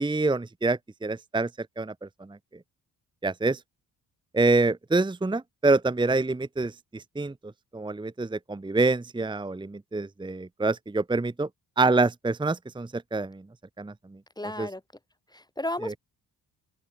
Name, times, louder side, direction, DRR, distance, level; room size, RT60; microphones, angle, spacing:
voice 1, 0.0-1.5 1.8-2.4 3.2-3.6 4.3-7.3 7.7-11.5 11.8-13.4 13.8-13.9 14.6-14.7 15.8-15.9, right 3 dB, 10° right, 0.9 m, -26 dB
voice 2, 14.4-14.8 15.3-16.0, left 1 dB, 10° left, 6.5 m, -33 dB
open air
cardioid pair, 75°, 41 cm